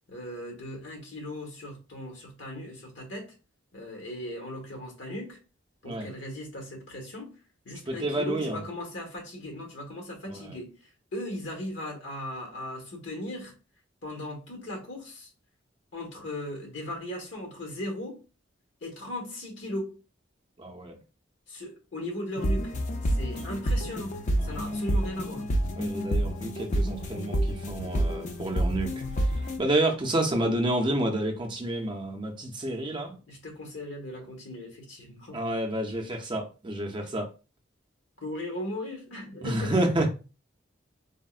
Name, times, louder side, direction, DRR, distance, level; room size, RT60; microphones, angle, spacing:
voice 1, 0.1-3.3 3.7-5.4 5.8-7.4 7.6-13.6 14.0-15.3 15.9-18.2 18.8-20.0 21.5-22.7 23.0-25.5 33.3-35.4 37.0-37.1 38.2-39.9, left 1 dB, 75° left, 1.1 m, -38 dB
voice 2, 7.9-8.6 10.3-10.4 20.6-20.9 24.4-24.6 25.8-28.9 29.6-33.1 35.3-37.3 39.4-40.1, right 1 dB, 25° right, 0.5 m, -29 dB
sound 1, 22.4-29.6, equal, 40° left, 0.4 m, -28 dB
3.5 x 2.0 x 2.3 m
head